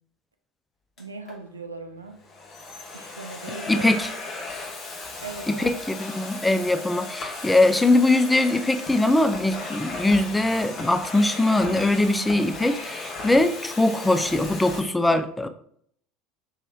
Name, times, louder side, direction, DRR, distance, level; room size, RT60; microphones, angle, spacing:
Domestic sounds home sounds, 1.0-1.4 2.1-14.8, left 3 dB, 40° left, 1.0 m, -36 dB
voice 1, 1.0-2.2 2.9-3.9 5.2-5.7, right 4 dB, 85° right, 0.4 m, -39 dB
voice 2, 3.7-4.1 5.5-15.5, left 2 dB, 10° left, 0.3 m, -21 dB
5.5 x 3.0 x 2.2 m
figure-of-eight pair, 70°, 0 cm